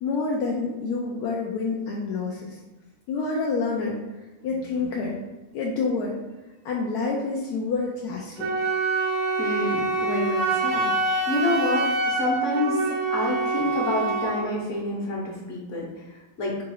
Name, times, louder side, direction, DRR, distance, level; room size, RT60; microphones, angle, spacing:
voice 1, 0.0-2.6 3.1-4.0 4.4-5.2 5.5-6.1 6.6-8.5, left 4 dB, 75° left, -2 dB, 1.1 m, -28 dB
Wind instrument woodwind instrument, 8.4-14.4, right 3 dB, 65° right, 1.1 m, -25 dB
voice 2, 9.4-10.9 11.3-12.8 13.1-15.9 16.4-16.5, left 2 dB, 50° left, -3 dB, 1.4 m, -28 dB
4.0 x 2.3 x 4.6 m, 1.1 s
omnidirectional pair, 1.7 m